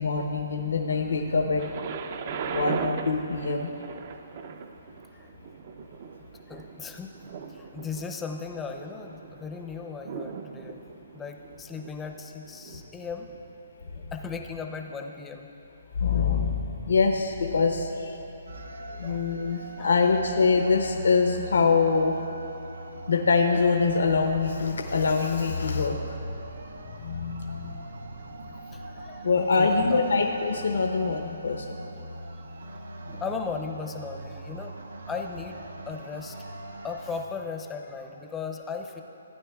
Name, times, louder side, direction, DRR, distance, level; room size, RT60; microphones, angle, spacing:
voice 1, 0.0-1.6 2.5-3.7 16.0-18.2 19.0-22.2 23.1-26.2 27.0-27.8 29.2-31.8, left 4 dB, 85° left, 2 dB, 0.7 m, -24 dB
Thunder, 1.6-13.4 14.2-14.3, right 6 dB, 40° right, 0.5 m, -39 dB
voice 2, 6.5-7.1 7.5-10.8 11.1-13.3 14.1-15.5 18.9-19.9 28.7-30.0 32.0-32.1 32.6-34.7 35.1-39.0, left 5 dB, 10° left, 4 dB, 0.5 m, -37 dB
sound 1, 18.5-37.2, right 2 dB, 90° right, 0.7 m, -42 dB
15.5 x 9.2 x 2.3 m, 3.0 s
hypercardioid pair, 155°, 0 cm